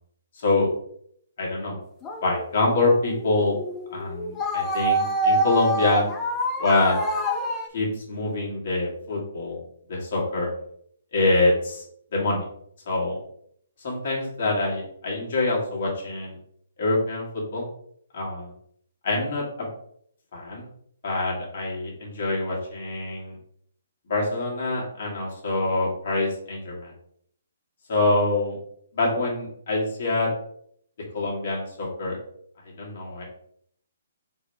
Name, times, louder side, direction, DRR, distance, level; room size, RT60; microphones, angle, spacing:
voice 1, 0.4-0.7 1.4-1.8 2.2-3.6 3.9-6.0 6.6-7.0 7.7-9.6 9.9-10.5 11.1-11.8 12.1-12.4 12.9-13.2 13.8-16.4 16.8-17.6 18.1-18.5 19.0-19.7 20.3-20.7 21.0-23.4 24.1-26.9 27.9-28.6 28.9-30.3 31.1-32.2 32.8-33.2, left 2 dB, 50° left, -3 dB, 1.6 m, -25 dB
sound 1, 2.0-7.7, right 1 dB, 15° left, 0.5 m, -27 dB
4.0 x 2.8 x 3.3 m, 0.66 s
hypercardioid pair, 140°, 0 cm